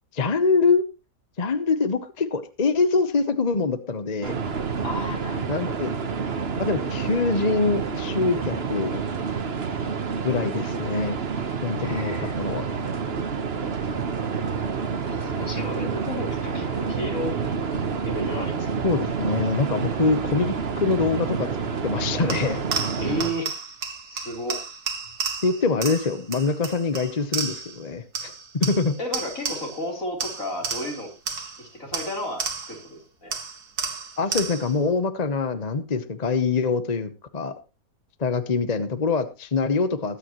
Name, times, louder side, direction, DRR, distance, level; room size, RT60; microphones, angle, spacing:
voice 1, 0.1-0.8 1.4-4.4 5.5-5.9 6.6-9.0 10.2-11.2 11.6-12.6 18.8-21.5 21.8-22.6 25.4-29.0 34.2-37.5 38.2-40.2, left 4 dB, 30° left, 10 dB, 0.8 m, -24 dB
sound 1, 4.2-23.3, right 5 dB, 45° right, 1.2 m, -28 dB
voice 2, 4.8-5.8 11.8-12.4 15.0-17.4 18.0-19.2 23.0-23.6 24.1-24.6 29.0-31.1 31.6-33.3, left 1 dB, 55° left, 1 dB, 4.4 m, -33 dB
sound 2, 22.3-27.8 28.1-29.9 30.2-32.9 33.3-34.8, right 5 dB, 75° right, 2.2 m, -32 dB
21.0 x 9.0 x 3.1 m, 0.29 s
omnidirectional pair, 1.7 m